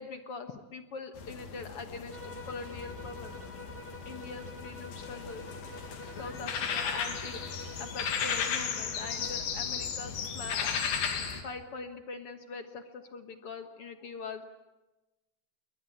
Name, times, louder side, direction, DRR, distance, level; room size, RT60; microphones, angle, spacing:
voice 1, 0.0-3.6 4.0-5.4 6.1-10.8 11.4-14.4, left 4 dB, 60° left, 8 dB, 1.6 m, -43 dB
sound 1, 1.2-11.4, left 6 dB, 80° left, 4.1 m, -35 dB
sound 2, 2.1-9.5, left 1 dB, 5° left, 1.6 m, -47 dB
29.0 x 22.5 x 8.6 m, 1.1 s
omnidirectional pair, 4.2 m